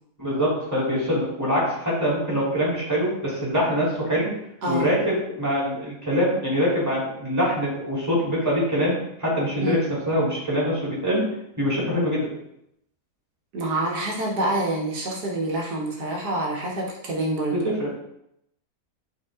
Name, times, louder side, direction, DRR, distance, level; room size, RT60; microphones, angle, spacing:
voice 1, 0.2-4.3 4.7-11.2 11.6-12.3 17.5-17.9, equal, 10° right, -7 dB, 3.1 m, -24 dB
voice 2, 13.5-17.6, right 1 dB, 90° right, -2 dB, 1.9 m, -26 dB
11.0 x 4.0 x 3.6 m, 0.80 s
omnidirectional pair, 1.7 m